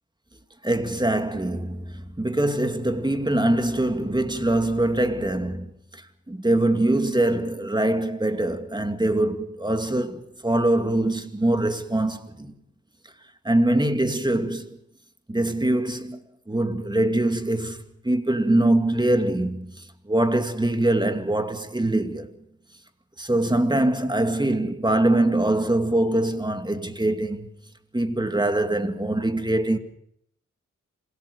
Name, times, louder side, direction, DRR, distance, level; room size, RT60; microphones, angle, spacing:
voice 1, 0.6-12.5 13.4-14.8 15.3-22.3 23.2-27.5 27.9-29.8, right 1 dB, 15° right, 2.4 m, -23 dB
27.0 x 17.5 x 6.9 m
cardioid pair, 50°, 30 cm